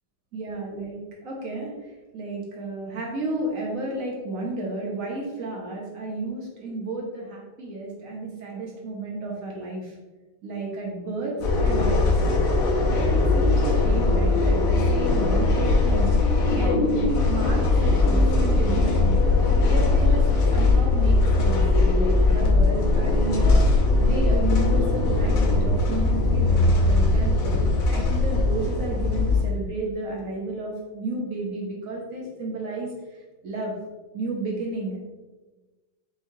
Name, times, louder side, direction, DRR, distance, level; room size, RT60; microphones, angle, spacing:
voice 1, 0.3-1.7 2.1-9.9 10.4-11.3 11.6-12.0 12.9-16.2 16.6-19.2 19.7-20.2 20.5-21.6 21.9-23.6 24.0-32.9 33.4-33.7 34.1-35.0, right 2 dB, 70° right, -2 dB, 0.8 m, -32 dB
sound 1, 11.4-29.4, left 2 dB, 80° left, 1.7 m, -20 dB
5.4 x 3.1 x 2.7 m, 1.2 s
omnidirectional pair, 2.3 m